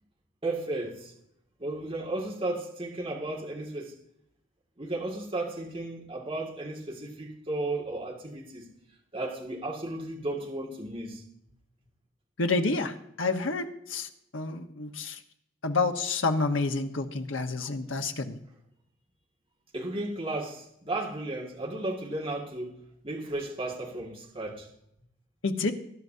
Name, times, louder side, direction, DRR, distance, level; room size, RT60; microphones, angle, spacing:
voice 1, 0.4-1.1 1.6-3.9 4.8-8.7 9.1-11.2 19.7-22.8 23.0-24.7, right 2 dB, 30° right, 2.1 m, -34 dB
voice 2, 12.4-15.2 15.6-18.4 25.4-25.7, left 3 dB, 75° left, 1.2 m, -29 dB
20.5 x 10.5 x 2.8 m
head